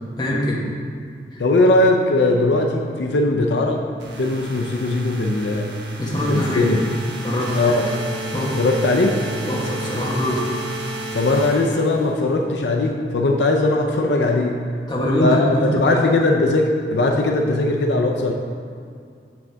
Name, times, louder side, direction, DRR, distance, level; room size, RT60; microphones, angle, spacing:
voice 1, 0.2-0.6 1.3-1.4 6.0-6.7 7.2-7.7 8.3-8.6 9.4-10.4 14.9-16.0, left 1 dB, 25° left, -4 dB, 1.1 m, -23 dB
voice 2, 1.4-3.9 4.2-5.7 6.3-6.8 7.5-8.0 8.6-9.2 11.1-14.6 15.2-18.3, left 2 dB, 75° left, 2 dB, 0.5 m, -19 dB
sound 1, 4.0-12.3, right 1 dB, 85° right, 0.8 m, -31 dB
7.0 x 6.2 x 3.4 m, 2.3 s
head